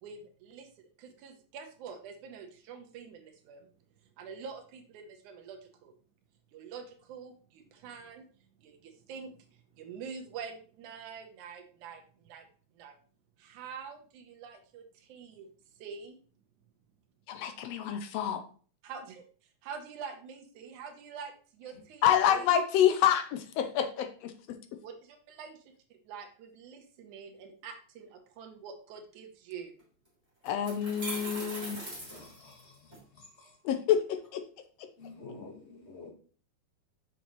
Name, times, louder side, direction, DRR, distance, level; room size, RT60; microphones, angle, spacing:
voice 1, 0.0-0.7 1.0-3.7 4.2-5.9 6.5-8.2 8.6-12.5 12.8-13.0 13.4-15.5 15.8-16.2 18.8-19.2 19.6-22.6 24.8-25.6 26.1-29.7, right 6 dB, 85° right, 4 dB, 2.4 m, -46 dB
voice 2, 17.3-18.4 22.0-24.3 30.4-31.8 33.6-34.4, left 9 dB, 80° left, 8 dB, 1.5 m, -27 dB
sound 1, 29.8-29.9 30.5-33.0, right 1 dB, 10° right, 3.0 m, -40 dB
voice 3, 31.9-32.7 35.0-36.1, left 3 dB, 40° left, -1 dB, 0.9 m, -48 dB
6.9 x 6.1 x 2.9 m, 0.42 s
omnidirectional pair, 3.4 m